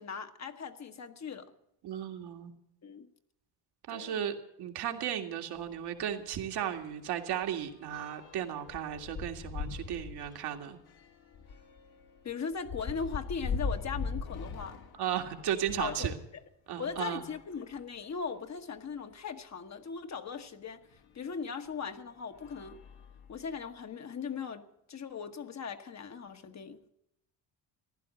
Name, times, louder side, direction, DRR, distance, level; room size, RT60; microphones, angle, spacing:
voice 1, 0.0-1.5 2.8-3.1 3.9-4.2 12.2-14.8 15.8-16.4 16.8-20.8 21.1-22.8 23.3-26.8, left 6 dB, 45° left, 6 dB, 1.3 m, -39 dB
voice 2, 1.8-2.5 3.9-10.8 14.9-16.2 16.7-17.2, right 9 dB, 75° right, 5 dB, 2.1 m, -35 dB
sound 1, 5.6-5.7 6.1-6.3 6.6-16.0 16.8-18.1 18.8-18.9 19.1-19.2 20.9-21.0 21.7-22.0 22.3-23.6, left 4 dB, 70° left, 2.0 m, -41 dB
15.5 x 11.0 x 7.7 m, 0.80 s
cardioid pair, 90°, 39 cm